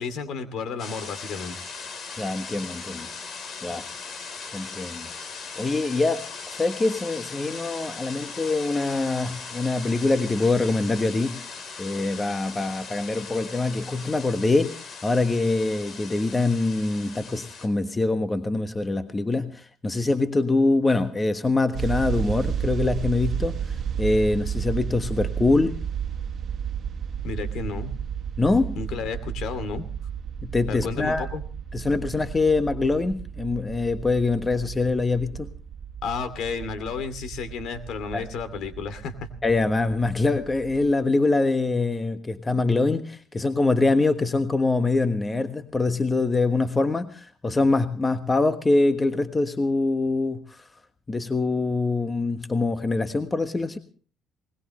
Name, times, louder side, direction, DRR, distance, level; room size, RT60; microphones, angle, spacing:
voice 1, 0.0-1.6 27.2-28.0 28.8-29.8 30.7-31.4 36.0-39.3, left 5 dB, 70° left, 2.6 m, -32 dB
sound 1, 0.8-17.7, left 5 dB, 55° left, 3.8 m, -39 dB
voice 2, 2.2-3.1 3.6-3.9 4.5-5.1 5.6-11.5 11.8-25.8 28.4-28.8 30.4-31.3 31.7-35.5 38.1-38.2 39.4-50.7 51.1-53.8, left 3 dB, 20° left, 1.4 m, -24 dB
sound 2, 21.7-40.9, right 8 dB, 55° right, 1.5 m, -33 dB
21.0 x 20.0 x 3.2 m
cardioid pair, 95°, 0 cm